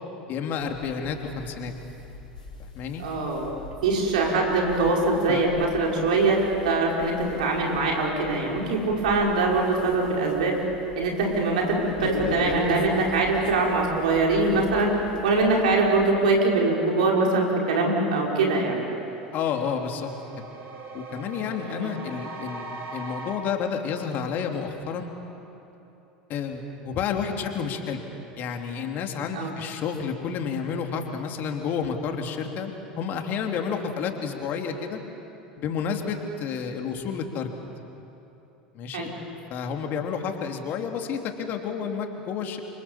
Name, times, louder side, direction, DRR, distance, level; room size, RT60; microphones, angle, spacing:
voice 1, 0.3-1.7 2.6-3.0 5.3-5.4 19.3-20.1 20.4-20.5 20.9-25.1 26.3-28.0 28.4-35.0 35.6-37.5 38.7-39.1 39.5-42.6, left 6 dB, 45° left, 3 dB, 3.1 m, -30 dB
sound 1, 0.6-16.1, left 2 dB, 85° left, 5.6 m, -40 dB
voice 2, 3.0-3.5 3.8-10.6 11.0-18.8 21.6-21.9 29.3-29.5 38.9-39.1, right 3 dB, 70° right, -1 dB, 5.4 m, -23 dB
sound 2, 18.0-23.3, right 3 dB, 50° right, 5.2 m, -41 dB
30.0 x 25.5 x 7.3 m, 3.0 s
hypercardioid pair, 80°, 4 cm